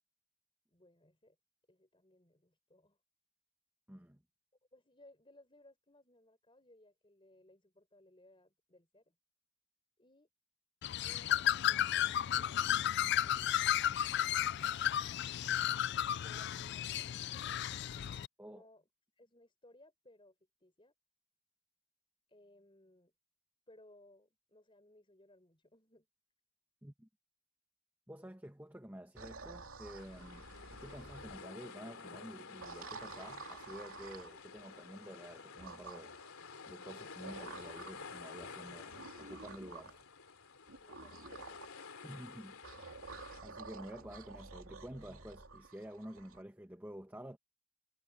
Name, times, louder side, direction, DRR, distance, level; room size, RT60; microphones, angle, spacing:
voice 1, 0.7-1.4 1.7-3.0 4.7-9.1 10.0-10.3 11.0-12.8 13.2-14.0 16.1-17.6 18.5-18.9 19.2-20.9 22.3-23.1 23.7-26.1 40.8-42.0, left 1 dB, 25° left, 4.7 m, -63 dB
voice 2, 3.9-4.2 18.4-18.6 26.8-27.1 28.1-30.5 30.8-36.2 36.7-38.9 39.2-40.0 42.0-42.6 43.4-47.4, equal, 10° right, 1.3 m, -50 dB
Bird, 10.8-18.3, left 11 dB, 50° left, 0.3 m, -33 dB
sound 1, 29.2-31.4 32.5-34.3 35.6-36.3 37.2-38.1 38.9-40.0 40.7-41.7 42.6-46.4, right 4 dB, 70° right, 2.7 m, -50 dB
sound 2, 30.0-43.4, left 4 dB, 80° left, 2.9 m, -51 dB
head